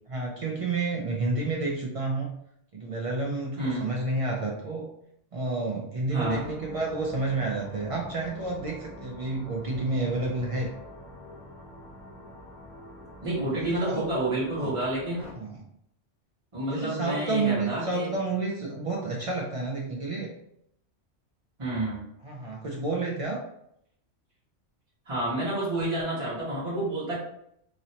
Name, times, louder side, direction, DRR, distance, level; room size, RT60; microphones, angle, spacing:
voice 1, 0.1-2.3 2.7-4.9 5.3-10.7 13.5-14.1 14.6-14.8 15.3-15.7 16.7-20.3 22.2-23.4, right 3 dB, 65° right, -2 dB, 0.3 m, -30 dB
voice 2, 3.6-3.9 6.1-6.4 13.2-15.2 16.5-18.1 21.6-22.0 25.0-27.2, right 1 dB, 30° right, -10 dB, 1.1 m, -29 dB
sound 1, 6.3-15.3, left 1 dB, ahead, 0.8 m, -46 dB
3.0 x 2.7 x 2.8 m, 0.75 s
omnidirectional pair, 1.2 m